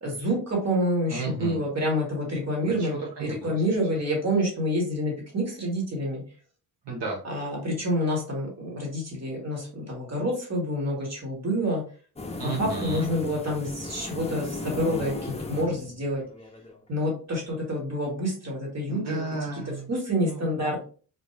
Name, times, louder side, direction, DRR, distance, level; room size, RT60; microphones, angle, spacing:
voice 1, 0.0-6.2 7.2-11.8 12.4-16.2 16.9-19.2 19.9-20.8, equal, 40° right, -1 dB, 1.8 m, -28 dB
voice 2, 1.1-1.6 2.6-3.5 6.8-7.2 12.4-13.1 18.9-19.9 20.2-20.4, right 3 dB, 75° right, -2 dB, 1.2 m, -33 dB
sound 1, 12.2-16.8, left 2 dB, 15° left, 0.5 m, -36 dB
4.2 x 2.4 x 3.2 m, 0.39 s
wide cardioid pair, 105°, 42 cm